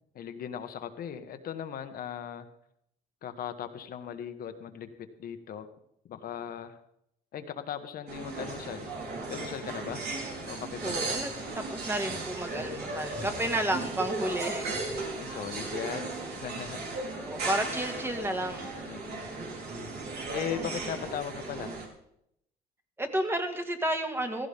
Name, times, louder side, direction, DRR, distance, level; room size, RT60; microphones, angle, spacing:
voice 1, 0.1-2.5 3.2-4.9 5.2-5.7 6.1-6.8 7.3-8.9 9.2-10.0 10.4-11.1 13.7-13.8 15.2-16.8 18.9-19.3 20.3-21.7, left 8 dB, 60° left, 8 dB, 1.6 m, -38 dB
sound 1, 8.1-21.9, right 3 dB, 70° right, 4.1 m, -36 dB
voice 2, 10.8-14.7 17.3-18.7 23.0-24.5, right 1 dB, 15° right, 5 dB, 2.1 m, -31 dB
16.0 x 15.0 x 3.7 m, 0.76 s
cardioid pair, 110°, 17 cm